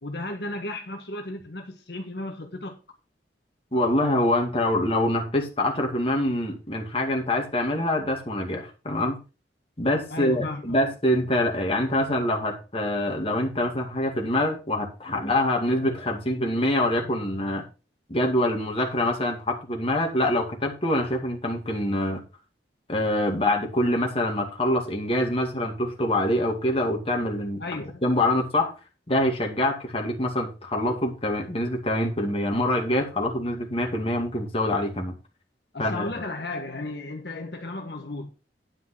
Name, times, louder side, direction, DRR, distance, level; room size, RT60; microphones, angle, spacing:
voice 1, 0.0-2.8 10.1-10.8 27.6-28.0 35.7-38.3, left 2 dB, 65° left, 1.5 m, -34 dB
voice 2, 3.7-9.2 9.8-17.6 18.1-22.2 22.9-27.6 28.0-28.7 29.1-35.1 35.8-36.1, left 1 dB, 35° left, 2.4 m, -25 dB
10.5 x 5.7 x 5.7 m
head